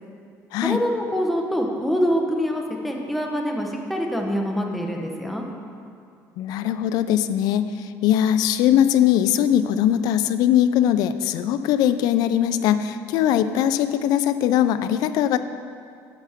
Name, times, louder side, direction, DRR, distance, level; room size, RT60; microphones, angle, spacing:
voice 1, 0.6-5.5, equal, ahead, 0 dB, 0.8 m, -25 dB
voice 2, 6.4-15.4, left 10 dB, 70° left, 12 dB, 0.4 m, -20 dB
9.0 x 6.9 x 3.5 m, 2.4 s
cardioid pair, 130°, 7 cm